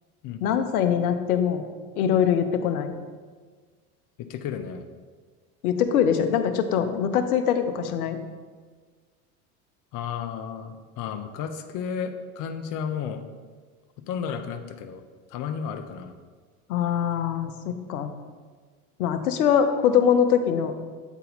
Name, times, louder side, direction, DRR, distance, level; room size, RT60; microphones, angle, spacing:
voice 1, 0.4-1.7 2.0-2.9 5.6-8.2 16.7-18.1 19.0-20.7, left 8 dB, 80° left, 8 dB, 0.7 m, -23 dB
voice 2, 4.3-4.9 9.9-13.2 14.1-15.0 15.3-16.1, left 7 dB, 45° left, 7 dB, 0.7 m, -33 dB
8.2 x 4.1 x 4.0 m, 1.5 s
hypercardioid pair, 75°, 44 cm